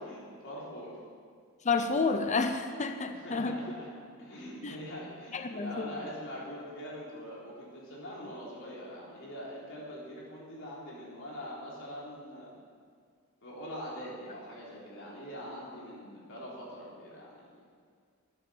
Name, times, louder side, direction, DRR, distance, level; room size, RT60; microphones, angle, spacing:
voice 1, 0.0-1.0 3.0-3.9 4.2-12.5 13.4-17.6, equal, 65° left, -5 dB, 3.8 m, -43 dB
voice 2, 1.6-3.8 4.6-4.8 5.3-5.9, left 4 dB, 35° left, 7 dB, 0.7 m, -30 dB
10.5 x 8.9 x 7.1 m, 2.1 s
head